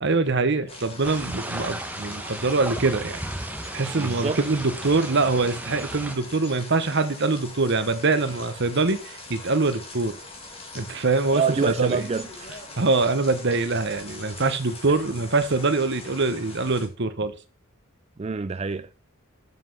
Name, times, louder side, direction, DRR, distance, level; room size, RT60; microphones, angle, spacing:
voice 1, 0.0-3.2 3.7-10.1 10.7-12.0 12.8-17.3, right 3 dB, 55° right, 1.0 m, -24 dB
sound 1, 0.7-16.9, left 2 dB, 30° left, 1.9 m, -42 dB
sound 2, 1.0-6.2, right 1 dB, 10° right, 1.0 m, -35 dB
voice 2, 4.0-4.4 11.3-12.5 18.2-18.9, right 5 dB, 30° right, 0.4 m, -27 dB
7.5 x 5.8 x 5.5 m
head